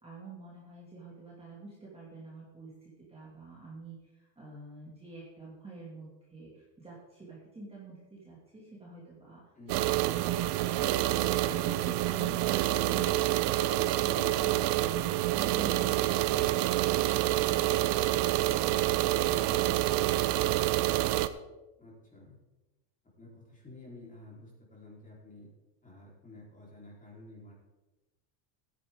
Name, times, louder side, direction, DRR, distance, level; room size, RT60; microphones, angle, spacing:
voice 1, 0.0-2.7 3.1-9.4 11.4-13.6, right 2 dB, 10° right, -6 dB, 2.5 m, -47 dB
sound 1, 9.7-21.3, right 15 dB, 55° right, 0.7 m, -27 dB
voice 2, 21.8-22.4 23.2-25.5 25.8-27.5, left 2 dB, 15° left, -4 dB, 4.2 m, -51 dB
15.5 x 9.9 x 3.8 m, 1.1 s
cardioid pair, 145°, 50 cm